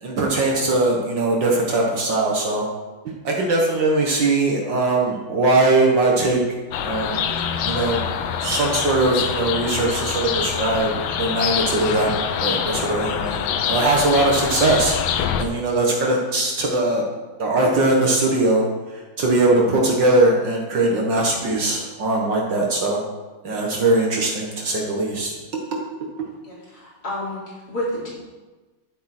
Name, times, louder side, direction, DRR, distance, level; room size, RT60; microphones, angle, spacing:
voice 1, 0.0-2.7 3.2-6.4 6.8-7.2 7.6-8.0 8.4-10.9 11.2-12.1 12.4-17.0 17.4-18.7 19.2-23.0 23.4-25.3 25.7-25.8, right 2 dB, 65° right, -1 dB, 2.2 m, -20 dB
sound 1, 6.7-15.4, left 8 dB, 85° left, 1.6 m, -25 dB
voice 2, 26.4-28.1, left 1 dB, 50° left, -7 dB, 4.8 m, -30 dB
11.5 x 10.0 x 4.4 m, 1.2 s
omnidirectional pair, 2.2 m